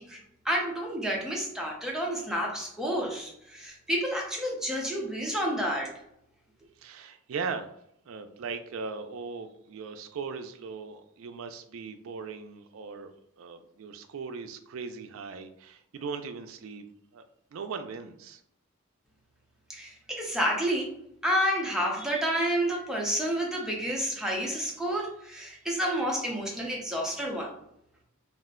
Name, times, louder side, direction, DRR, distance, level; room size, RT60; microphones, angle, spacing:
voice 1, 0.0-5.9 19.7-20.9 21.2-27.6, equal, 5° right, -2 dB, 0.6 m, -30 dB
voice 2, 6.8-7.7 8.1-13.1 13.4-16.8 17.1-17.2 17.5-18.4, right 5 dB, 75° right, 9 dB, 0.4 m, -38 dB
2.4 x 2.1 x 3.6 m, 0.76 s
head